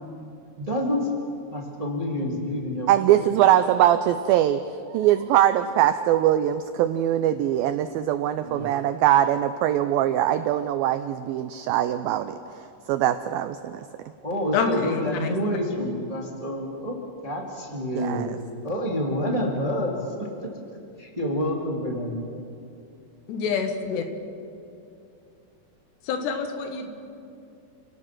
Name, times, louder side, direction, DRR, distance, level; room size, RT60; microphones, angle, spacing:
voice 1, 0.6-1.1 1.5-2.9 3.2-3.3 8.4-8.7 14.2-18.4 18.6-22.3, equal, 15° right, 0 dB, 1.3 m, -28 dB
voice 2, 2.9-4.6 4.9-13.8 18.0-18.3, right 12 dB, 90° right, 11 dB, 2.1 m, -22 dB
voice 3, 14.5-15.6 23.3-24.0 26.1-26.9, left 5 dB, 80° left, 5 dB, 3.8 m, -27 dB
29.5 x 18.5 x 6.0 m, 2.5 s
omnidirectional pair, 4.9 m